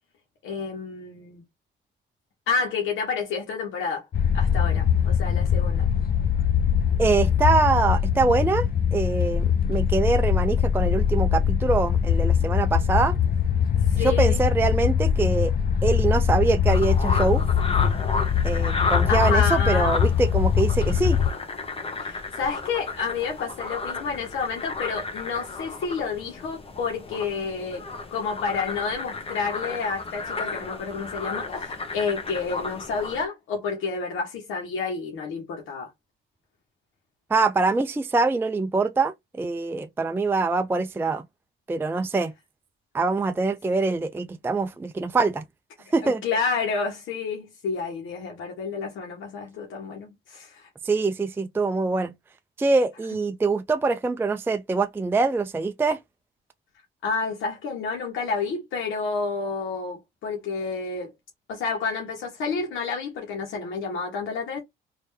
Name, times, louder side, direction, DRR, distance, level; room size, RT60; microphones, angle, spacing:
voice 1, 0.4-1.4 2.5-4.0 4.3-5.9 13.8-14.4 19.1-19.9 22.0-35.9 46.0-50.7 57.0-61.1 61.5-64.6, left 5 dB, 80° left, 1.2 m, -29 dB
sound 1, 4.1-21.3, left 8 dB, 50° left, 0.6 m, -22 dB
voice 2, 7.0-13.2 14.0-15.5 15.8-17.4 18.4-21.2 37.3-41.2 41.7-42.3 42.9-45.4 45.9-46.2 50.8-52.1 52.6-56.0, right 3 dB, 10° right, 0.4 m, -24 dB
sound 2, 16.7-33.2, left 3 dB, 30° left, 1.0 m, -33 dB
3.3 x 2.7 x 3.1 m
cardioid pair, 90°, 20 cm